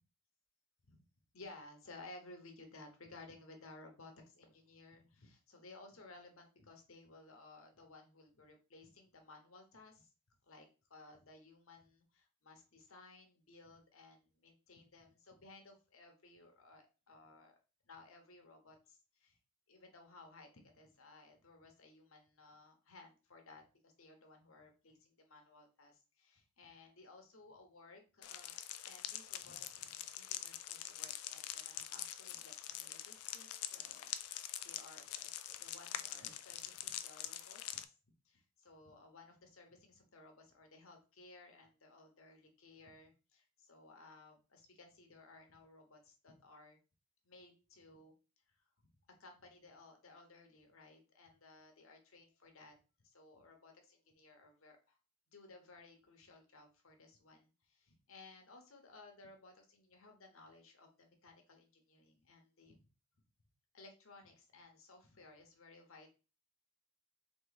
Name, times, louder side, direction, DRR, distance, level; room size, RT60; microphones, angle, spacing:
voice 1, 1.3-10.1 10.4-17.6 17.8-19.4 19.7-28.6 28.8-37.9 38.2-46.8 47.2-48.1 48.5-48.6 49.2-52.8 53.0-55.0 55.3-62.9 63.7-66.1, left 3 dB, 65° left, 3 dB, 1.1 m, -59 dB
sound 1, 28.2-37.8, left 12 dB, 85° left, 0.4 m, -45 dB
3.8 x 3.1 x 4.0 m, 0.33 s
head